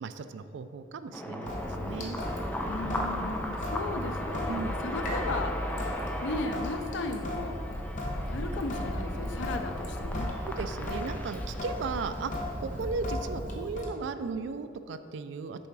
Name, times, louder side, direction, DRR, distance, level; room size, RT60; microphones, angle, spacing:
voice 1, 0.0-2.2 4.5-4.7 10.5-15.7, right 4 dB, 70° right, 11 dB, 0.3 m, -36 dB
sound 1, 1.1-13.1, left 1 dB, 10° left, 0.4 m, -38 dB
Sink (filling or washing) / Drip, 1.4-13.9, left 1 dB, 45° left, 0.9 m, -36 dB
voice 2, 2.6-7.5 8.3-10.3, left 2 dB, 70° left, 6 dB, 0.5 m, -36 dB
6.9 x 3.7 x 4.6 m, 2.6 s
head